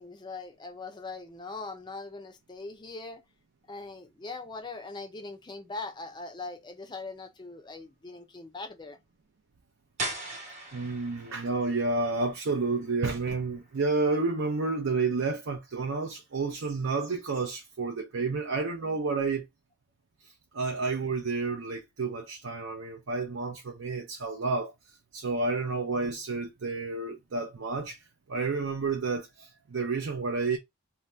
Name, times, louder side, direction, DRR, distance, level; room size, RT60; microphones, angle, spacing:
voice 1, 0.0-3.2 3.7-9.0, left 3 dB, 20° left, 0.4 m, -41 dB
sound 1, 10.0-15.6, right 2 dB, 35° right, 1.0 m, -42 dB
voice 2, 10.7-19.5 20.5-24.7 25.1-28.0 28.3-30.6, right 3 dB, 75° right, 0.5 m, -30 dB
2.7 x 2.1 x 3.2 m
head